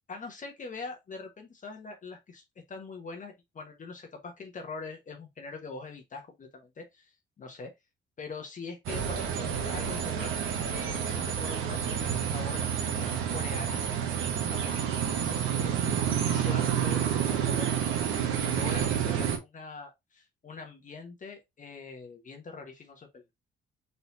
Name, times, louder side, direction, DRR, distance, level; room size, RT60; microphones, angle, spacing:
voice 1, 0.1-2.4 2.7-7.7 8.2-10.3 10.7-14.0 14.3-17.7 18.0-18.2 18.5-23.2, left 4 dB, 40° left, 1.2 m, -43 dB
sound 1, 8.9-19.4, right 8 dB, 90° right, 1.2 m, -29 dB
4.2 x 4.0 x 2.6 m
cardioid pair, 90°, 20 cm